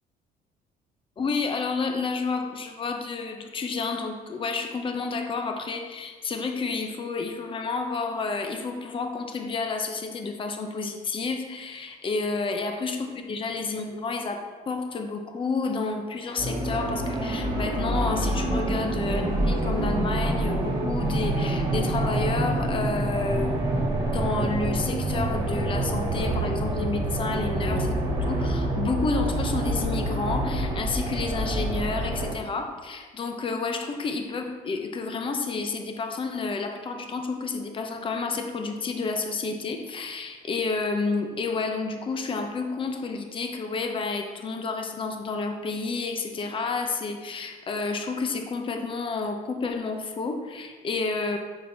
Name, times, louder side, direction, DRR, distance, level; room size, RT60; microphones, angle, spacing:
voice 1, 1.2-23.6 24.1-28.0 28.2-51.4, left 4 dB, 30° left, 5 dB, 0.7 m, -30 dB
sound 1, 16.4-32.3, right 1 dB, 30° right, 2.0 m, -27 dB
7.3 x 6.0 x 2.8 m, 1.4 s
cardioid pair, 110°, 17 cm